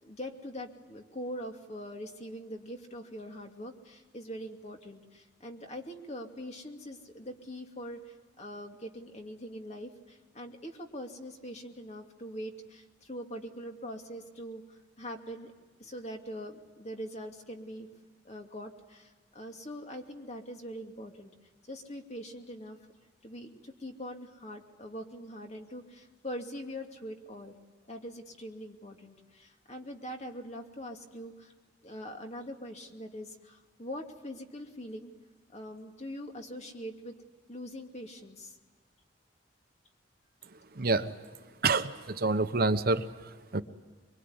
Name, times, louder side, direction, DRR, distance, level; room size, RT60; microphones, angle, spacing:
voice 1, 0.0-15.5 15.8-17.9 18.2-21.3 21.6-22.8 23.2-27.5 27.9-31.5 31.8-35.1 35.5-37.1 37.5-38.6, equal, 35° left, 3 dB, 2.5 m, -43 dB
voice 2, 40.7-41.1 41.6-43.6, right 3 dB, 50° right, 10 dB, 1.0 m, -28 dB
24.0 x 23.5 x 9.6 m, 1.3 s
head